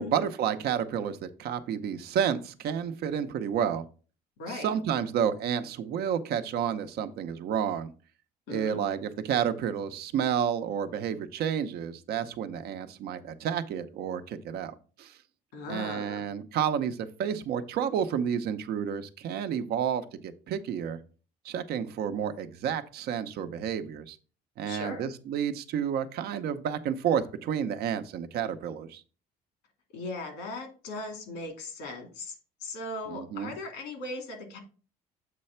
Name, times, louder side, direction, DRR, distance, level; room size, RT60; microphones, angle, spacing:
voice 1, 0.0-3.8 4.5-7.9 8.5-15.2 15.7-21.0 21.4-24.2 24.6-29.0 33.1-33.5, right 8 dB, 70° right, 9 dB, 0.8 m, -30 dB
voice 2, 4.4-4.7 8.5-8.8 15.5-16.2 24.6-25.0 29.9-34.6, left 2 dB, 90° left, 5 dB, 2.3 m, -38 dB
7.6 x 3.2 x 5.6 m, 0.37 s
cardioid pair, 110°, 17 cm